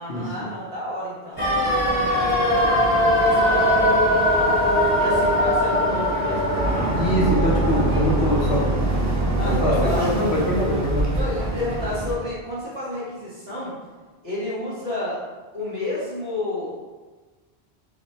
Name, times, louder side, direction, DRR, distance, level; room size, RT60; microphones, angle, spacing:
voice 1, 0.0-1.4 2.2-2.8 3.2-4.6 5.0-6.7 7.9-8.6 9.4-10.2 11.2-13.7 14.2-15.2 15.5-16.8, left 1 dB, 65° right, -7 dB, 1.7 m, -31 dB
sound 1, 1.4-11.3 11.6-11.7, left 1 dB, 45° left, 1.1 m, -22 dB
Boat Water vehicle, 1.4-12.1, right 2 dB, 20° right, 0.5 m, -26 dB
voice 2, 6.9-8.6 9.4-11.1, equal, 75° left, -3 dB, 1.3 m, -23 dB
4.8 x 2.3 x 4.1 m, 1.3 s
omnidirectional pair, 1.1 m